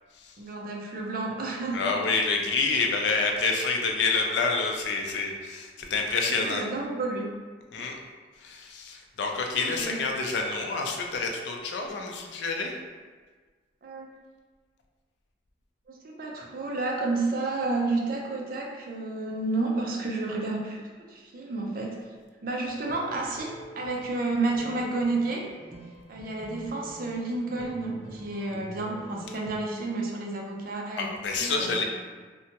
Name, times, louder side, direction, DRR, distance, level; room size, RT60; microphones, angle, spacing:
voice 1, 0.4-2.0 6.3-7.4 9.6-10.0 13.8-14.1 15.9-20.8 21.1-22.0 22.4-25.5 26.1-31.1 31.4-31.8, right 2 dB, 55° right, -1 dB, 0.4 m, -31 dB
voice 2, 1.7-6.6 7.7-8.0 8.4-12.7 31.0-31.8, left 4 dB, 75° left, 2 dB, 0.4 m, -28 dB
sound 1, 22.6-29.6, right 2 dB, 20° right, 0.7 m, -45 dB
2.7 x 2.2 x 2.8 m, 1.4 s
head